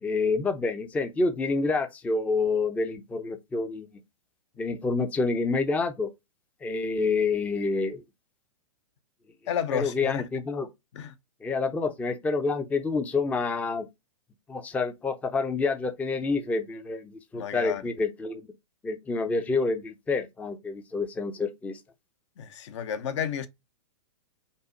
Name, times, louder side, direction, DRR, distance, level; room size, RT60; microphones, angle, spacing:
voice 1, 0.0-3.9 4.6-6.1 6.6-8.0 9.7-10.7 11.4-13.9 14.5-18.5 18.8-21.8, left 4 dB, 10° left, 0.4 m, -28 dB
voice 2, 9.5-10.2 10.9-11.1 17.3-17.8 22.4-23.5, left 8 dB, 55° left, 0.6 m, -31 dB
5.3 x 2.1 x 3.8 m
hypercardioid pair, 120°, 17 cm